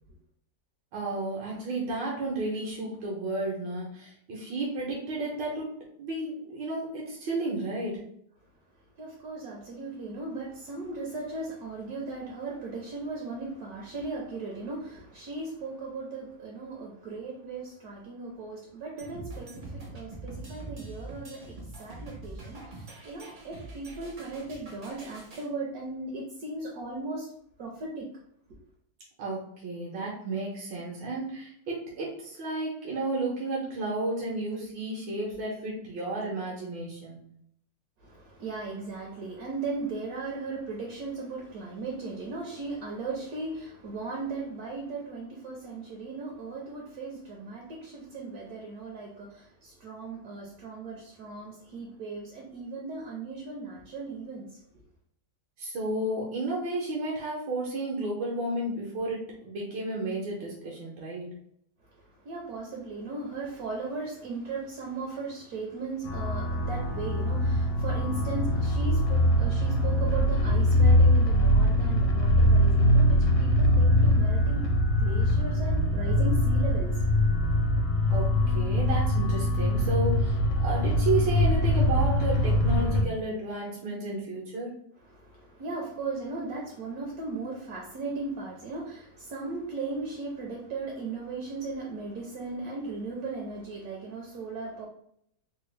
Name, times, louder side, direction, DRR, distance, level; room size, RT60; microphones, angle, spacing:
voice 1, 0.9-5.7 6.0-8.0 29.2-37.2 55.6-61.3 78.1-84.7, right 2 dB, 85° right, -4 dB, 1.5 m, -32 dB
voice 2, 9.0-27.3 27.6-28.1 28.5-28.6 38.0-54.5 61.8-74.7 75.0-76.9 85.0-94.9, right 3 dB, 65° right, -1 dB, 1.0 m, -37 dB
sound 1, 19.0-25.5, right 2 dB, 50° right, 0.5 m, -43 dB
sound 2, 66.0-83.0, left 1 dB, 75° left, 1.3 m, -23 dB
3.6 x 2.2 x 3.2 m, 0.69 s
omnidirectional pair, 2.0 m